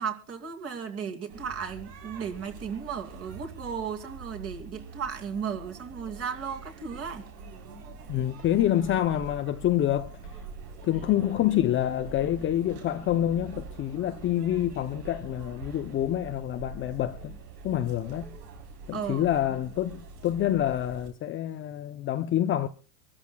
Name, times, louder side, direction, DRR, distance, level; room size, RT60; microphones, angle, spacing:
voice 1, 0.0-7.3 18.9-19.6, right 7 dB, 30° right, 2.5 m, -35 dB
sound 1, 1.3-21.1, right 4 dB, 80° right, 4.1 m, -44 dB
voice 2, 8.1-10.2 10.8-17.3 17.6-18.3 18.9-22.7, left 12 dB, 25° left, 0.7 m, -27 dB
26.0 x 14.0 x 2.3 m
supercardioid pair, 135°, 48 cm